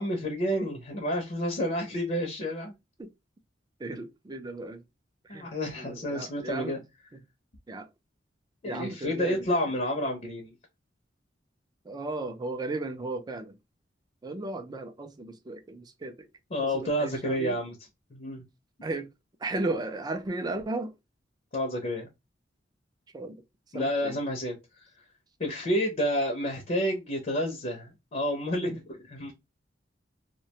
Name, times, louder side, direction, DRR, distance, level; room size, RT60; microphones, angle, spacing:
voice 1, 0.0-2.7 5.3-6.8 8.6-10.5 16.5-17.8 18.1-18.4 21.5-22.1 23.7-24.9 25.4-29.3, equal, 40° left, 0.6 m, -30 dB
voice 2, 3.8-4.8 5.2-5.5 5.8-6.8 7.7-7.9 8.7-9.4 11.9-13.6 14.2-16.3 16.6-17.5 18.8-19.1 19.4-20.9 23.1-23.4 23.7-24.1 28.6-28.8, right 2 dB, 20° right, 0.4 m, -35 dB
2.4 x 2.1 x 2.8 m
head